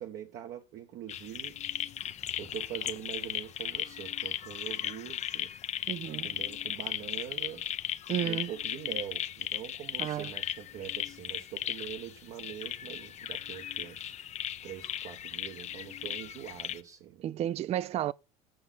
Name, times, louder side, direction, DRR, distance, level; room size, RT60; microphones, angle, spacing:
voice 1, 0.0-1.6 2.4-5.5 6.2-7.6 8.2-14.1 14.6-17.3, right 10 dB, 55° right, 1.1 m, -43 dB
sound 1, 1.1-16.8, left 11 dB, 40° left, 0.6 m, -37 dB
voice 2, 5.9-6.4 8.1-8.5 10.0-10.3 17.2-18.1, right 11 dB, 35° right, 0.4 m, -32 dB
7.8 x 4.9 x 7.0 m
hypercardioid pair, 85°, 18 cm